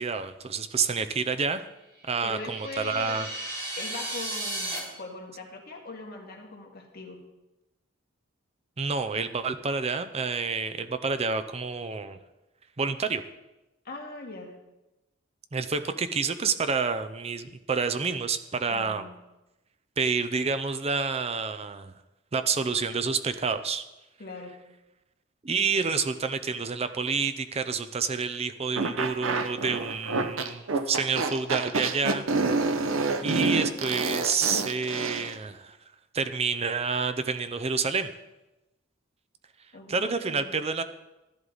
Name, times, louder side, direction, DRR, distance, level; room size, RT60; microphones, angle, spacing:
voice 1, 0.0-1.6 2.1-3.3 8.8-12.2 12.8-13.2 15.5-19.1 20.0-21.9 22.3-23.9 25.4-32.2 33.2-35.8 36.1-38.1 39.9-40.8, right 5 dB, 30° right, 10 dB, 0.6 m, -28 dB
sound 1, 2.0-4.8, right 1 dB, 50° right, 3.1 m, -35 dB
voice 2, 2.2-3.3 3.8-7.2 13.8-14.5 18.7-19.1 24.2-24.6 32.8-33.2 39.7-40.6, left 2 dB, 50° left, 0 dB, 2.2 m, -41 dB
sound 2, 28.8-35.3, right 3 dB, 85° right, 1.0 m, -27 dB
14.0 x 11.0 x 4.0 m, 1.0 s
head